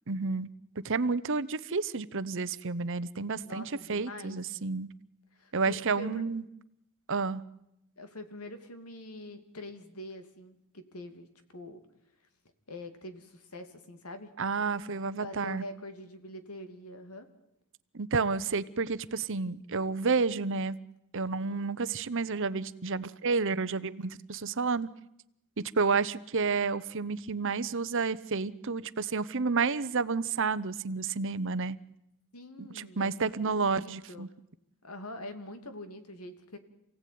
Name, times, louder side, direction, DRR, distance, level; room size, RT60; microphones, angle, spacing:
voice 1, 0.1-0.5 0.8-4.9 5.5-6.4 7.1-7.4 14.4-15.6 17.9-20.8 21.1-24.9 25.8-31.8 32.6-34.3, right 4 dB, 60° right, 16 dB, 0.9 m, -30 dB
voice 2, 3.4-4.4 5.3-6.3 8.0-11.8 12.7-14.3 15.2-17.3 32.3-34.3 34.8-36.6, left 1 dB, 90° left, 8 dB, 2.8 m, -44 dB
28.0 x 17.0 x 9.5 m, 0.82 s
head